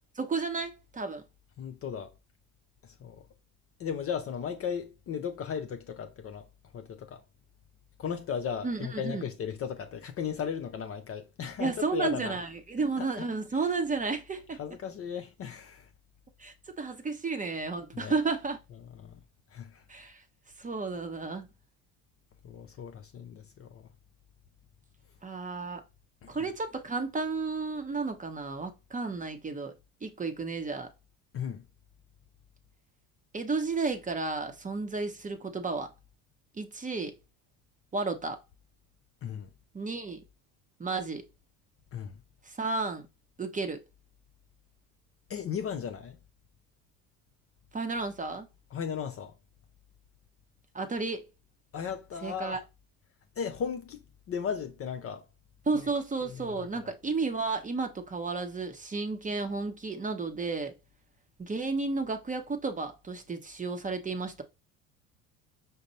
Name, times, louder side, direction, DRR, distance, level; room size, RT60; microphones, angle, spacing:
voice 1, 0.2-1.2 8.6-9.3 11.6-14.6 16.4-18.6 19.9-20.2 20.6-21.5 25.2-25.8 26.3-29.7 30.0-30.9 33.3-35.9 36.6-37.1 37.9-38.4 39.7-40.2 40.8-41.2 42.4-43.1 43.4-43.8 47.7-48.5 50.7-51.2 52.2-52.6 55.7-60.7 61.4-64.4, right 4 dB, 15° right, 0.7 m, -32 dB
voice 2, 1.6-2.1 2.8-3.2 3.8-6.5 6.7-7.2 8.0-12.4 13.0-13.3 14.6-15.9 17.9-18.1 19.0-19.2 19.5-19.8 22.4-23.9 26.2-26.5 31.3-31.6 39.2-39.5 41.9-42.2 45.3-46.2 48.7-49.3 51.7-52.6 53.4-54.0 54.3-55.2 55.7-55.9 56.2-56.7, left 7 dB, 30° left, 0.5 m, -36 dB
5.1 x 2.0 x 3.9 m
hypercardioid pair, 75°, 45 cm